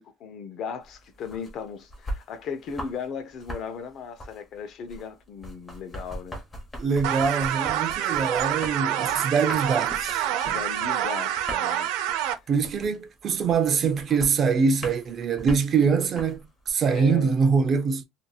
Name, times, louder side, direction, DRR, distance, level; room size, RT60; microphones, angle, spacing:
voice 1, 0.0-6.4 10.3-11.9 12.8-12.9 16.9-17.4, left 6 dB, 45° left, 0.6 m, -37 dB
sound 1, 0.8-3.1 3.3-16.7, equal, 15° left, 1.0 m, -40 dB
voice 2, 6.8-10.6 12.5-18.0, right 5 dB, 35° right, 0.5 m, -24 dB
sound 2, 7.0-12.3, right 11 dB, 85° right, 0.6 m, -27 dB
2.9 x 2.7 x 2.3 m
cardioid pair, 150°, 0 cm